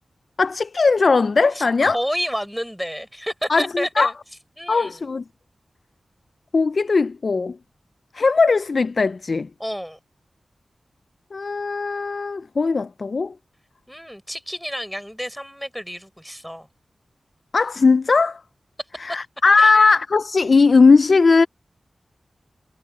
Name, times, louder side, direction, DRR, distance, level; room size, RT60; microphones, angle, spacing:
voice 1, 0.4-2.0 3.5-4.1 4.7-5.2 6.5-7.6 8.1-9.5 11.3-13.3 17.5-18.4 19.0-21.5, left 4 dB, 65° left, 0.4 m, -18 dB
voice 2, 1.5-4.1 4.6-5.0 9.6-10.0 13.9-16.7 19.6-19.7, equal, ahead, 5.2 m, -29 dB
cardioid pair, 55°, 0 cm